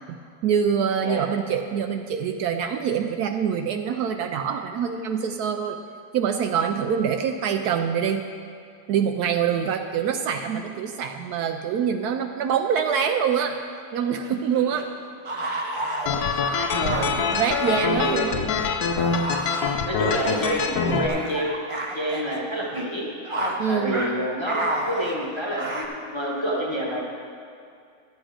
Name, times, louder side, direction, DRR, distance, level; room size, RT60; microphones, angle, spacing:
voice 1, 0.1-5.8 6.1-8.2 8.9-13.6 13.9-14.9 16.8-18.4 23.6-24.0, right 7 dB, 75° right, 6 dB, 1.0 m, -25 dB
sound 1, 14.2-18.2 18.6-22.4 22.7-22.9 23.2-23.6 23.9-24.1 24.5-25.9, right 1 dB, 30° right, 0.6 m, -31 dB
sound 2, 16.1-21.1, left 6 dB, 70° left, 1.1 m, -25 dB
voice 2, 16.7-17.1 17.8-18.3 19.8-21.5 21.9-23.1 23.7-27.0, right 1 dB, 20° left, -3 dB, 1.1 m, -28 dB
11.5 x 8.1 x 4.9 m, 2.3 s
omnidirectional pair, 1.8 m